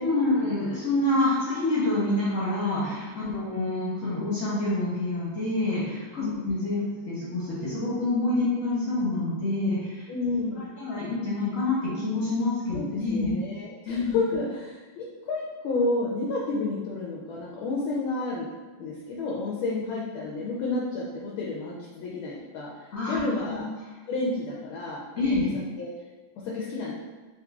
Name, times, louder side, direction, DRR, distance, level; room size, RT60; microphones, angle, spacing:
voice 1, 0.0-6.8 7.0-10.1 10.8-13.3 13.9-14.2 22.9-23.2 23.5-23.6 25.2-25.5, left 2 dB, 50° left, -9 dB, 1.2 m, -27 dB
voice 2, 10.1-10.7 12.7-18.5 18.8-23.7 24.1-25.0 25.3-25.9 26.4-26.9, left 3 dB, 80° left, -4 dB, 1.4 m, -31 dB
3.7 x 3.1 x 2.3 m, 1.3 s
omnidirectional pair, 2.2 m